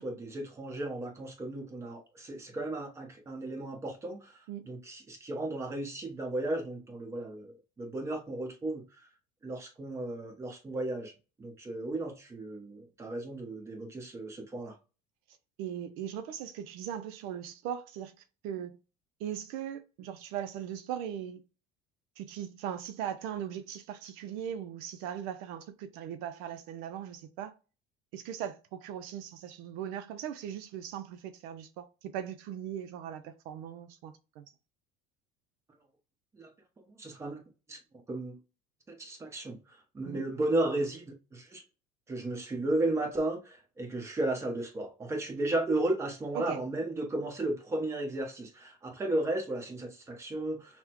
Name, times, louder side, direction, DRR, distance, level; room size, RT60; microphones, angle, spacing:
voice 1, 0.0-9.1 9.4-14.8 36.3-36.5 36.9-37.4 37.7-37.8 38.1-38.4 38.9-41.6 42.1-50.8, right 2 dB, 15° right, 0.9 m, -34 dB
voice 2, 15.6-18.1 18.4-18.8 19.2-21.4 22.2-27.5 28.1-34.5 40.0-40.2 46.3-46.6, right 9 dB, 70° right, 0.5 m, -39 dB
5.8 x 2.1 x 2.9 m
cardioid pair, 140°, 16 cm